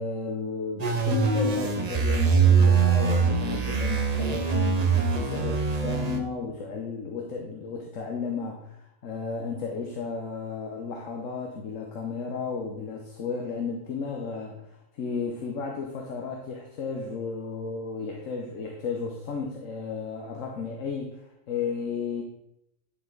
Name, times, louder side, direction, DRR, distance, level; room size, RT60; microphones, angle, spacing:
voice 1, 0.0-14.6 14.9-21.2 21.5-22.2, left 5 dB, 85° left, 1 dB, 1.3 m, -33 dB
sound 1, 0.8-6.2, right 5 dB, 35° right, 0.8 m, -23 dB
10.0 x 5.6 x 3.9 m, 0.81 s
omnidirectional pair, 1.3 m